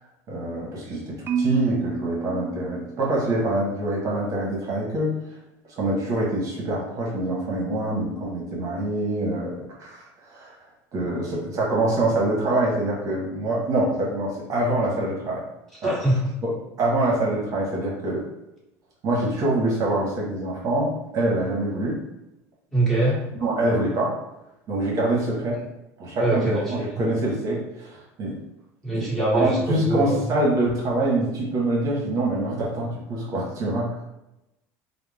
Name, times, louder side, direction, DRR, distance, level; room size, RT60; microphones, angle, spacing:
voice 1, 0.3-5.1 5.8-9.5 9.8-10.5 10.9-15.4 15.8-15.9 16.4-16.5 16.8-18.2 19.0-21.9 23.4-24.2 24.7-25.6 26.0-28.4 28.9-29.1 29.3-33.9, right 1 dB, 45° right, -4 dB, 0.9 m, -25 dB
Marimba xylophone, 1.3-3.4, right 5 dB, 30° right, 0.3 m, -29 dB
voice 2, 15.8-16.3 22.7-23.2 25.5-25.6 26.2-26.9 28.8-30.3, right 1 dB, 5° left, -8 dB, 1.3 m, -23 dB
2.4 x 2.0 x 3.2 m, 0.90 s
supercardioid pair, 105°, 8 cm